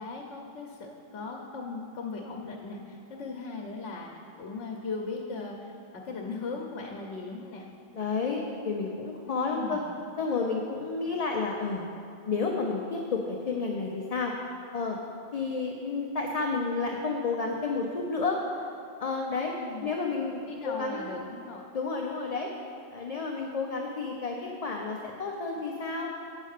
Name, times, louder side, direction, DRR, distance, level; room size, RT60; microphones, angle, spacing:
voice 1, 0.0-7.7 9.3-9.8 19.3-19.9 20.4-21.6, left 4 dB, 85° left, 0 dB, 1.1 m, -38 dB
voice 2, 7.9-9.8 10.2-11.8 12.2-14.3 14.7-15.0 15.3-18.7 19.0-19.5 19.8-21.1 21.7-22.5 22.9-26.1, left 4 dB, 40° left, 0 dB, 0.6 m, -31 dB
8.2 x 5.4 x 6.5 m, 2.5 s
omnidirectional pair, 1.2 m